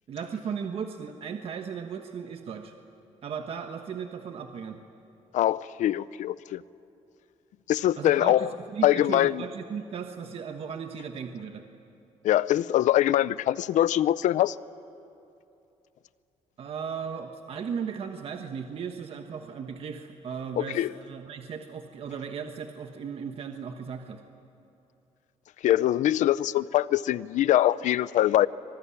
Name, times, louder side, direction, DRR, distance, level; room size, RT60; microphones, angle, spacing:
voice 1, 0.1-2.7 3.2-4.8 8.0-11.6 16.6-24.2, right 6 dB, 50° right, 1.3 m, -36 dB
voice 2, 5.3-6.6 7.7-8.5 8.8-9.4 12.2-14.6 20.6-20.9 25.6-28.5, left 13 dB, 75° left, 0.6 m, -23 dB
25.0 x 21.5 x 9.9 m
cardioid pair, 155°, 13 cm